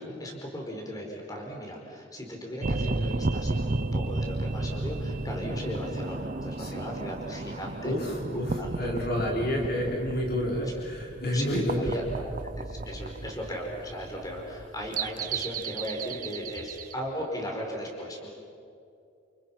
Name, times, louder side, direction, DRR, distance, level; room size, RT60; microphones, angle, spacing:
voice 1, 0.0-8.0 8.6-8.9 11.3-11.5 11.7-12.3 12.6-18.3, equal, 20° left, 0 dB, 5.1 m, -37 dB
sound 1, 2.6-16.9, right 2 dB, 45° right, 0.7 m, -33 dB
voice 2, 6.6-6.9 7.8-11.9, equal, 55° left, -1 dB, 5.0 m, -29 dB
30.0 x 29.5 x 6.0 m, 2.6 s
head